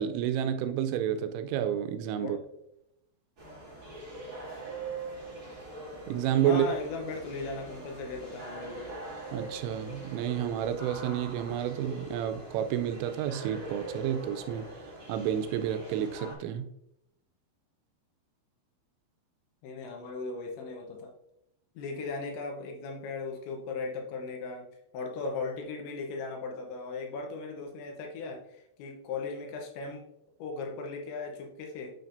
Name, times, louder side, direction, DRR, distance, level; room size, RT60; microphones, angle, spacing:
voice 1, 0.0-2.4 6.1-6.7 9.3-14.6 15.1-16.7, right 10 dB, 90° right, 9 dB, 3.2 m, -30 dB
sound 1, 3.4-16.3, right 2 dB, 30° right, 2.0 m, -43 dB
voice 2, 6.4-8.9 19.6-21.1 21.8-24.7 24.9-30.0 30.4-31.9, left 4 dB, 75° left, 1 dB, 3.1 m, -37 dB
8.4 x 5.9 x 2.6 m, 0.79 s
omnidirectional pair, 5.6 m